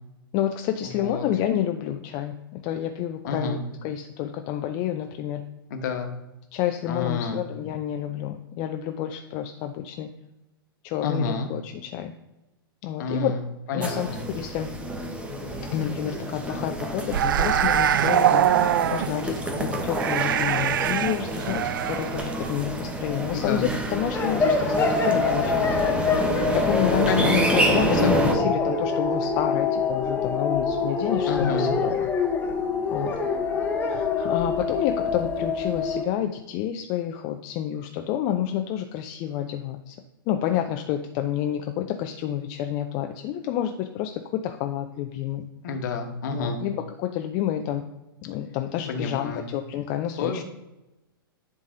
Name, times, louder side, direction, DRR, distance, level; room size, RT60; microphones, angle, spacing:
voice 1, 0.3-3.6 3.8-5.4 6.5-10.1 10.8-12.1 12.8-13.3 13.7-14.1 14.3-14.7 15.7-18.5 18.9-26.0 26.5-32.1 32.9-33.2 33.8-40.0 40.3-45.4 46.3-47.8 48.2-50.3, left 11 dB, 35° left, 6 dB, 0.6 m, -29 dB
voice 2, 3.2-3.6 5.7-6.1 6.9-7.4 11.0-11.5 13.0-13.4 13.7-14.2 23.3-23.7 27.1-27.4 28.0-28.5 31.3-31.8 45.6-46.6 48.9-49.5 50.2-50.4, left 4 dB, 50° left, 5 dB, 1.3 m, -29 dB
sound 1, 13.8-28.3, right 1 dB, 10° right, 1.1 m, -28 dB
sound 2, 17.1-23.7 24.0-24.2, right 10 dB, 60° right, 0.4 m, -23 dB
sound 3, 24.1-36.0, left 4 dB, 15° left, 1.1 m, -25 dB
10.5 x 3.9 x 3.8 m, 0.98 s
figure-of-eight pair, 105°, 12 cm